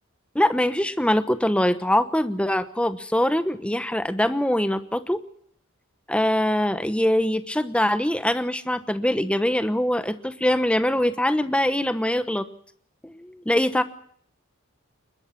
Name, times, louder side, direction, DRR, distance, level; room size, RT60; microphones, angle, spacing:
voice 1, 0.3-5.2 6.1-12.5 13.0-13.8, left 1 dB, 5° left, 11 dB, 1.0 m, -23 dB
21.5 x 21.0 x 5.8 m, 0.64 s
head